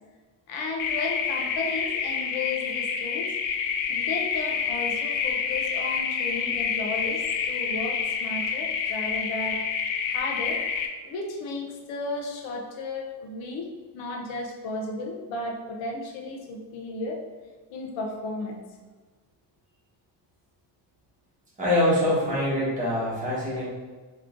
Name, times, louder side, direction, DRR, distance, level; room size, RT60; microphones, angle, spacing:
voice 1, 0.5-3.3 3.9-9.6 10.1-10.6 11.0-13.7 13.9-17.2 17.7-18.6, left 2 dB, 90° left, 1 dB, 0.9 m, -34 dB
sound 1, 0.8-10.9, left 6 dB, 50° left, 0.4 m, -28 dB
voice 2, 21.6-23.6, left 1 dB, 15° right, -9 dB, 1.4 m, -24 dB
3.7 x 3.1 x 3.7 m, 1.4 s
cardioid pair, 170°, 45 cm